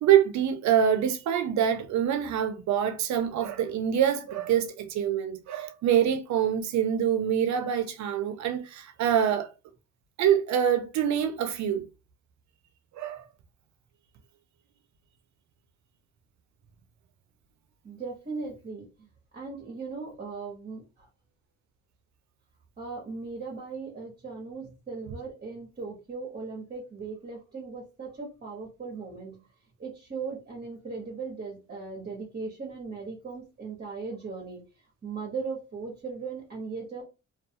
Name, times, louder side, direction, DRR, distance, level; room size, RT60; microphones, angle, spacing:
voice 1, 0.0-9.5 10.2-11.9 12.9-13.2, right 9 dB, 65° right, 0.6 m, -25 dB
voice 2, 17.8-19.1 19.3-21.1 22.8-29.5 29.8-34.6 35.0-37.0, right 4 dB, 35° right, 0.9 m, -38 dB
2.4 x 2.3 x 2.7 m
cardioid pair, 90°, 30 cm